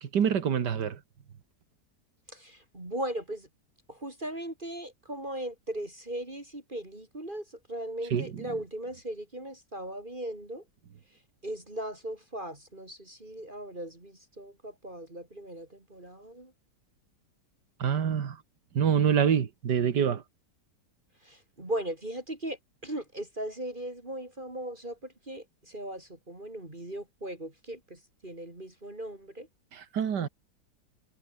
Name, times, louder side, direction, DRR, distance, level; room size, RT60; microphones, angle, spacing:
voice 1, 0.0-1.0 8.1-8.3 17.8-18.4 18.7-20.2 29.7-30.3, right 8 dB, 75° right, 2.1 m, -26 dB
voice 2, 2.3-3.5 3.9-10.6 11.4-16.5 21.2-29.5, right 1 dB, 25° right, 3.9 m, -38 dB
omnidirectional pair, 1.9 m